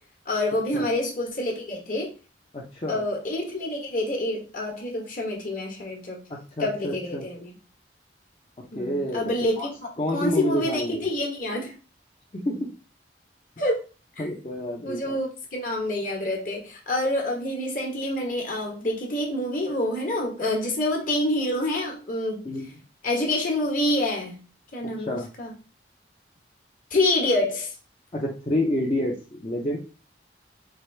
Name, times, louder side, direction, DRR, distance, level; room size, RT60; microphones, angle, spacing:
voice 1, 0.2-2.1 2.9-6.2 6.6-7.5 8.7-11.7 13.6-13.8 14.2-14.3 14.8-22.5 23.0-24.4 24.7-25.5 26.9-27.7, left 1 dB, 50° left, 1 dB, 1.3 m, -27 dB
voice 2, 2.5-3.0 6.3-7.3 8.8-9.2 9.6-9.7 10.0-11.1 12.3-12.7 14.2-15.2 22.4-22.7 25.1-25.3 28.1-29.8, left 1 dB, 30° left, -4 dB, 0.7 m, -28 dB
4.8 x 2.6 x 3.3 m, 0.33 s
head